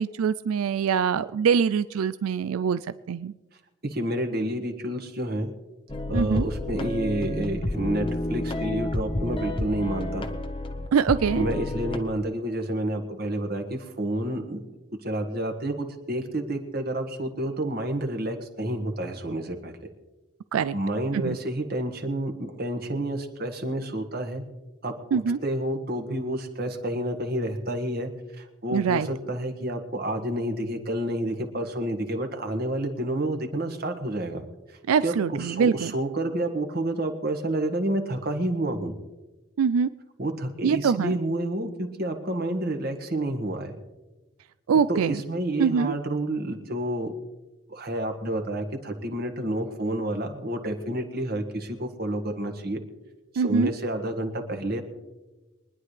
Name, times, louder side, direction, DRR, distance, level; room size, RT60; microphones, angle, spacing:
voice 1, 0.0-2.8 3.1-3.3 6.1-6.4 10.9-11.5 20.5-20.7 21.1-21.4 25.1-25.4 28.7-29.1 34.9-35.9 39.6-39.9 40.6-41.2 44.7-45.2 45.6-46.0 53.4-53.7, right 6 dB, 85° right, 14 dB, 0.4 m, -23 dB
voice 2, 3.8-5.5 6.1-10.3 11.3-14.6 15.0-19.8 20.7-24.4 24.8-34.4 34.7-38.9 40.2-43.7 44.9-47.1 47.7-52.8 53.3-54.8, right 1 dB, 45° right, 5 dB, 1.5 m, -29 dB
sound 1, 5.9-12.0, left 1 dB, 25° left, 0.8 m, -30 dB
24.0 x 10.5 x 3.3 m, 1.1 s
head